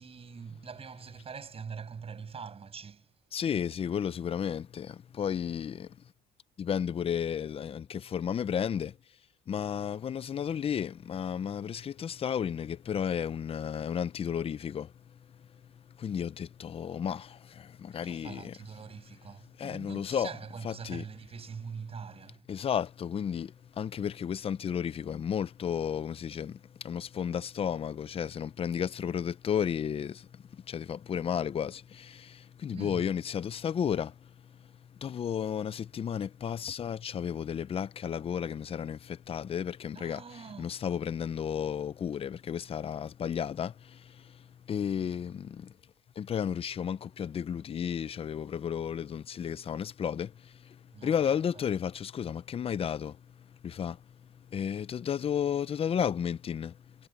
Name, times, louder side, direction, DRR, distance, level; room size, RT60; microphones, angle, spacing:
voice 1, 0.0-3.1 17.9-22.5 32.7-33.1 39.9-40.8 50.9-51.4, right 6 dB, 35° right, 7.1 m, -44 dB
voice 2, 3.3-6.0 6.6-9.0 9.5-14.9 16.0-18.5 19.6-20.3 20.6-21.0 22.5-34.3 35.0-40.2 40.6-45.7 46.2-53.2 53.6-54.0 54.5-57.1, left 8 dB, 35° left, 0.6 m, -33 dB
cardioid pair, 110°, 17 cm